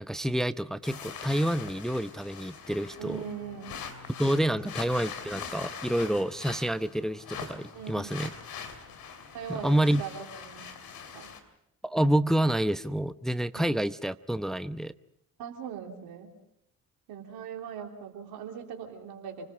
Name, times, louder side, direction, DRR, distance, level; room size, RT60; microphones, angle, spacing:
voice 1, 0.0-3.2 4.2-8.3 9.5-10.0 11.8-14.9, right 1 dB, ahead, 13 dB, 0.8 m, -28 dB
sound 1, 0.8-11.4, left 6 dB, 65° left, 2.9 m, -42 dB
voice 2, 3.0-3.8 7.7-8.3 9.3-10.7 11.1-11.3 13.5-13.7 15.4-16.3 17.1-19.5, right 7 dB, 75° right, 2 dB, 3.1 m, -40 dB
29.5 x 20.0 x 5.4 m, 0.77 s
hypercardioid pair, 50°, 38 cm